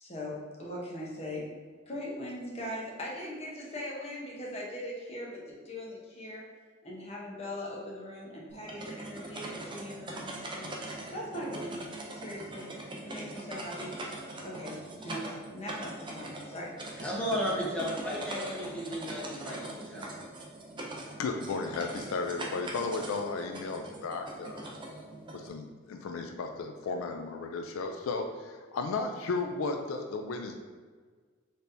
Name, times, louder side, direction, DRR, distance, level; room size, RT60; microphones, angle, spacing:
voice 1, 0.1-1.4 1.9-6.4 6.8-10.7 11.1-11.9 12.1-12.7 13.0-13.9 14.4-14.8 15.0-16.7, left 1 dB, 30° left, -4 dB, 0.9 m, -40 dB
sound 1, 8.5-25.5, right 1 dB, 25° right, 0.5 m, -42 dB
voice 2, 17.0-20.2, equal, 5° left, -6 dB, 1.0 m, -34 dB
voice 3, 21.2-24.6 25.3-30.5, left 3 dB, 80° left, 5 dB, 0.4 m, -34 dB
4.2 x 3.4 x 2.6 m, 1.5 s
head